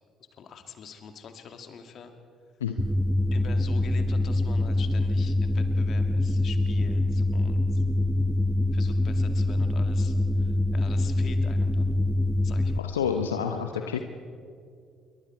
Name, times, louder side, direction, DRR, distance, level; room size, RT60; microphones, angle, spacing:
voice 1, 0.4-2.1 3.3-7.8 8.7-12.0 12.4-12.9 13.7-14.0, left 6 dB, 50° left, 7 dB, 2.3 m, -45 dB
sound 1, 2.8-12.8, left 1 dB, ahead, 1.0 m, -25 dB
voice 2, 12.8-14.0, left 7 dB, 80° left, 6 dB, 0.9 m, -29 dB
27.0 x 23.5 x 4.6 m, 2.3 s
figure-of-eight pair, 50°, 0 cm